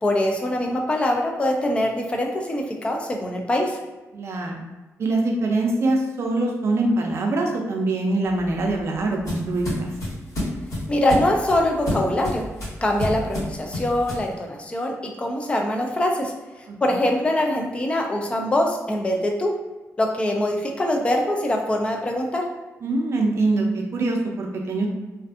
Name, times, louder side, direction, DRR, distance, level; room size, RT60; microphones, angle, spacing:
voice 1, 0.0-3.8 10.9-12.4 12.8-16.3 16.8-19.5 20.0-22.4, left 1 dB, 20° left, 1 dB, 0.3 m, -23 dB
voice 2, 4.1-4.5 5.0-9.9 16.7-17.0 22.8-24.9, right 2 dB, 50° right, 1 dB, 0.4 m, -24 dB
sound 1, 8.3-14.3, left 1 dB, 80° left, 1.5 m, -30 dB
2.5 x 2.4 x 2.4 m, 1.1 s
wide cardioid pair, 145°, 6 cm